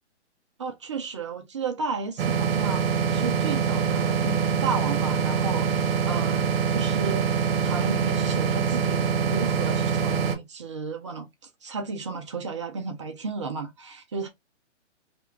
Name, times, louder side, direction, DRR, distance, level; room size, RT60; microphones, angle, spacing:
voice 1, 0.6-7.3 7.6-11.3 11.6-14.3, right 4 dB, 25° right, 0.3 m, -33 dB
sound 1, 2.2-10.4, right 6 dB, 55° right, 0.8 m, -24 dB
2.5 x 2.2 x 2.9 m
hypercardioid pair, 130°, 36 cm